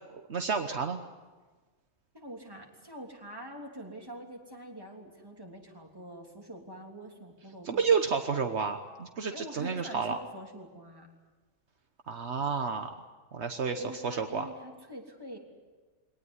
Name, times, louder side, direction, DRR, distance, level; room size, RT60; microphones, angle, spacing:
voice 1, 0.1-1.0 7.6-10.2 12.1-12.9 13.3-14.5, right 5 dB, 70° right, 6 dB, 1.4 m, -30 dB
voice 2, 2.1-7.8 9.3-11.1 13.7-15.4, right 1 dB, 20° right, 0 dB, 3.3 m, -45 dB
23.0 x 18.5 x 9.6 m, 1.3 s
omnidirectional pair, 1.2 m